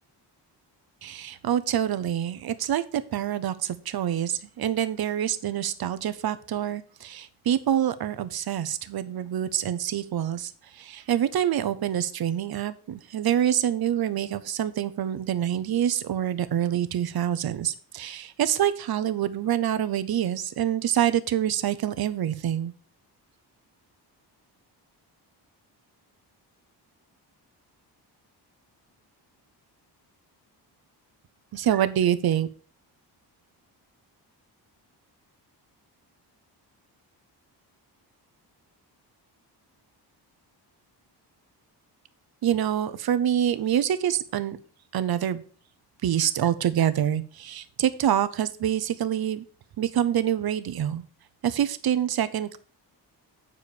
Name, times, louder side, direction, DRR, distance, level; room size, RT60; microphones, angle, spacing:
voice 1, 1.0-22.7 31.5-32.5 42.4-44.6 44.9-45.4 46.0-49.4 49.8-51.0 51.4-52.6, right 10 dB, 60° right, 13 dB, 0.9 m, -26 dB
8.5 x 4.8 x 6.9 m, 0.41 s
cardioid pair, 120°, 42 cm